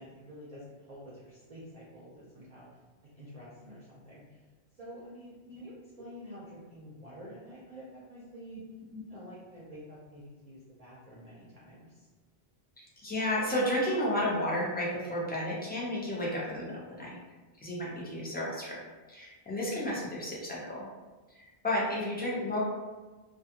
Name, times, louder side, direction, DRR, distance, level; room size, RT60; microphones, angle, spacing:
voice 1, 0.0-2.6 3.1-4.4 4.7-8.6 9.1-12.1, equal, 45° right, -8 dB, 0.5 m, -48 dB
voice 2, 13.0-17.2 17.6-18.8 19.1-20.9 21.3-22.6, left 1 dB, 15° left, -5 dB, 0.3 m, -32 dB
2.3 x 2.3 x 2.7 m, 1.3 s
omnidirectional pair, 1.1 m